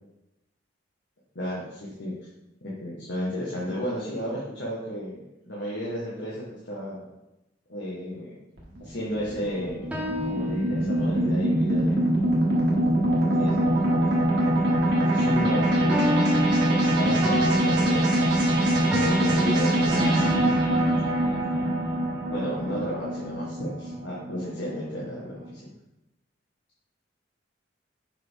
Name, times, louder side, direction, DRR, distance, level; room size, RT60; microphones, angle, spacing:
voice 1, 1.3-2.1 2.8-7.0 7.7-8.3 8.8-9.9 10.2-12.0 13.2-14.5 14.9-18.4 19.0-20.2 20.5-21.2 22.3-25.6, equal, 70° left, -7 dB, 1.6 m, -33 dB
sound 1, 8.6-25.0, right 1 dB, 70° right, 2.0 m, -23 dB
sound 2, 9.5-11.3 15.9-19.4, equal, 5° right, 1.0 m, -32 dB
7.1 x 5.4 x 3.7 m, 0.93 s
head